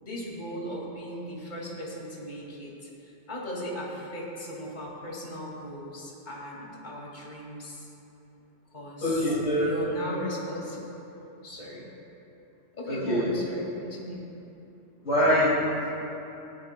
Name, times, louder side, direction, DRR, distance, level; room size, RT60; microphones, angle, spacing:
voice 1, 0.0-7.9 8.7-9.2 9.6-10.8 11.4-11.9 12.7-14.2, left 1 dB, 35° left, -3 dB, 2.2 m, -37 dB
voice 2, 9.0-9.8 12.9-13.2 15.0-15.7, equal, 80° left, -10 dB, 2.8 m, -24 dB
20.0 x 15.5 x 2.2 m, 3.0 s
omnidirectional pair, 1.3 m